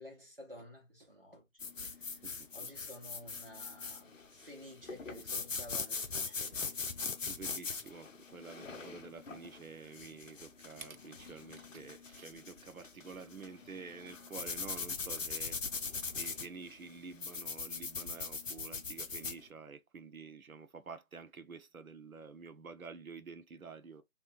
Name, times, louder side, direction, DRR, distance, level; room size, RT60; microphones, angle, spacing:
voice 1, 0.0-1.7 2.0-2.2 2.5-6.8, left 1 dB, 45° right, 1.4 m, -52 dB
sound 1, 1.6-19.4, left 4 dB, 70° left, 0.6 m, -41 dB
voice 2, 7.1-15.6 16.2-24.0, right 5 dB, 90° right, 0.7 m, -49 dB
2.7 x 2.4 x 4.0 m
figure-of-eight pair, 180°, 41 cm